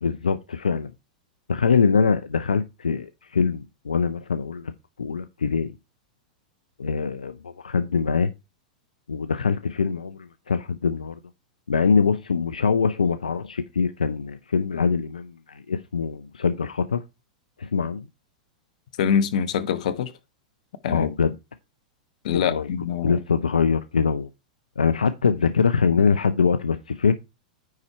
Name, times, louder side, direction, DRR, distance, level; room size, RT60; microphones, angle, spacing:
voice 1, 0.0-0.9 1.5-4.7 5.0-5.7 6.8-8.3 9.1-11.2 11.7-17.0 17.6-18.1 20.9-21.3 22.3-22.7 23.0-24.3 24.8-27.1, left 5 dB, 90° left, 0.5 m, -23 dB
voice 2, 19.0-20.1 20.8-21.1 22.2-23.2, left 8 dB, 65° left, 1.0 m, -24 dB
9.6 x 4.2 x 4.4 m
hypercardioid pair, 105°, 4 cm